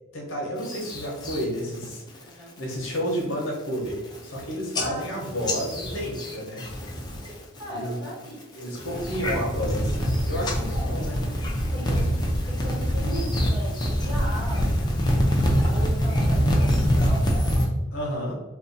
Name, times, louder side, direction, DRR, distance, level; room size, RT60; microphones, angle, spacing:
voice 1, 0.1-6.6 7.7-8.0 8.5-11.2 17.9-18.3, equal, 65° left, -1 dB, 0.8 m, -31 dB
sound 1, 0.6-1.4 1.8-2.2 2.6-3.0 3.4-3.5 3.7-4.4 4.7-7.3 7.6-8.1 8.6-17.7, equal, 20° left, 0.4 m, -25 dB
voice 2, 4.8-5.3 7.6-8.4 10.7-11.3 11.7-17.5, right 1 dB, 25° right, -7 dB, 1.3 m, -38 dB
2.6 x 2.3 x 3.9 m, 1.1 s
head